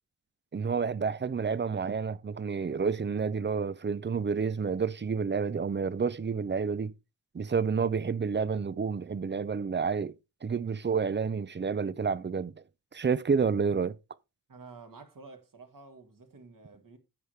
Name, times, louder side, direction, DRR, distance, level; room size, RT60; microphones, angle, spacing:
voice 1, 0.5-6.9 7.3-10.1 10.4-12.5 12.9-13.9, right 5 dB, 30° right, 0.5 m, -29 dB
voice 2, 14.5-17.0, right 4 dB, 60° right, 1.9 m, -50 dB
10.5 x 8.1 x 3.2 m
wide cardioid pair, 105°, 37 cm